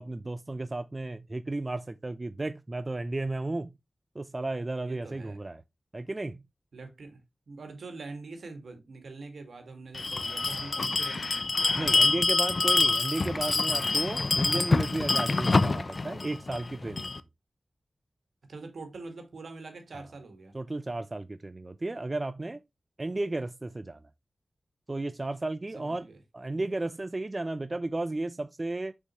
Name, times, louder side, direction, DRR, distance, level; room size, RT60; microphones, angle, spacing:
voice 1, 0.0-3.7 4.1-5.6 5.9-6.4 11.7-17.1 19.9-20.0 20.5-22.6 23.0-24.0 24.9-26.1 26.3-28.9, right 2 dB, 35° right, 0.5 m, -34 dB
voice 2, 4.8-5.4 6.7-7.2 7.5-12.2 18.5-20.5 25.8-26.2, right 3 dB, 80° right, 2.1 m, -44 dB
Bell, 9.9-17.2, left 3 dB, 55° left, 0.6 m, -26 dB
6.5 x 5.5 x 3.1 m
cardioid pair, 50°, 0 cm